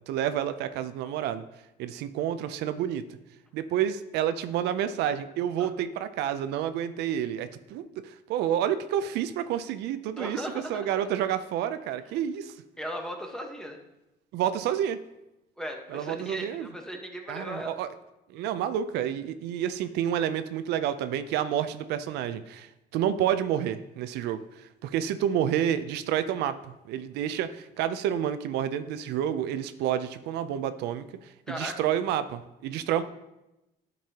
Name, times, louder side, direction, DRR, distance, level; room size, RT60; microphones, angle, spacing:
voice 1, 0.1-1.4 1.8-3.0 3.5-10.4 10.7-12.5 14.3-15.0 15.9-16.7 17.3-17.9 18.3-31.3 31.6-33.0, right 10 dB, 85° right, 11 dB, 0.5 m, -29 dB
voice 2, 10.2-11.1 12.8-13.8 15.6-17.7 31.5-31.8, equal, 5° left, 2 dB, 1.2 m, -37 dB
10.5 x 5.3 x 2.9 m, 0.92 s
cardioid pair, 110°, 17 cm